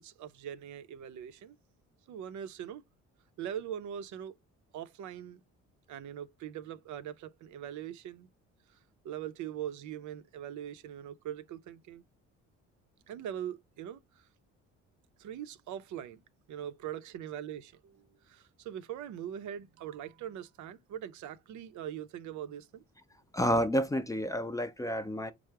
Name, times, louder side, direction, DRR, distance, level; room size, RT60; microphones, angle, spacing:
voice 1, 0.0-1.6 2.1-2.8 3.4-4.4 4.7-5.4 5.9-8.3 8.7-8.8 9.0-12.0 13.1-14.3 15.2-16.2 16.5-22.8, right 10 dB, 75° right, 0.5 m, -42 dB
voice 2, 23.3-25.3, equal, 10° left, 0.4 m, -30 dB
4.6 x 2.0 x 4.5 m
cardioid pair, 90°, 30 cm